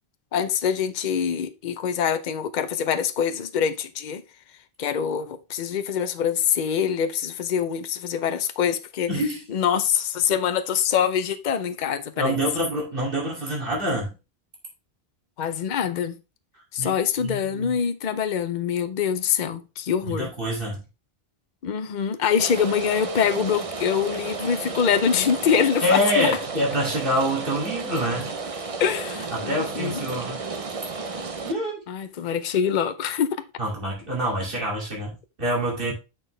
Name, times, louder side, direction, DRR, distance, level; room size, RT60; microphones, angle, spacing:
voice 1, 0.3-4.2 4.8-9.1 9.5-12.4 15.4-16.1 16.7-20.3 21.6-26.3 28.8-30.0 31.9-33.3, left 8 dB, 55° left, 0.8 m, -24 dB
voice 2, 9.1-9.4 12.2-14.1 16.8-17.8 20.0-20.8 25.8-28.3 29.3-30.4 31.4-31.8 33.6-35.9, equal, 60° right, 2.9 m, -26 dB
Rain, 22.4-31.5, right 4 dB, 40° right, 0.7 m, -33 dB
6.9 x 5.9 x 3.3 m
omnidirectional pair, 1.0 m